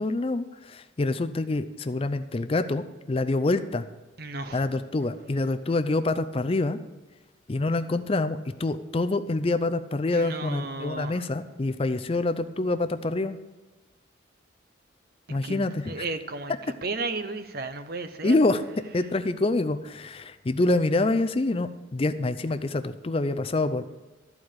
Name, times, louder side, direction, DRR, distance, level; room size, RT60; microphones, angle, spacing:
voice 1, 0.0-3.8 4.5-6.8 7.5-13.4 15.3-15.9 18.2-18.6 18.9-23.8, left 2 dB, 30° left, 11 dB, 0.4 m, -26 dB
voice 2, 4.2-4.7 10.1-11.2 15.3-18.3, right 3 dB, 50° right, 9 dB, 0.8 m, -34 dB
13.5 x 4.8 x 8.8 m, 1.2 s
head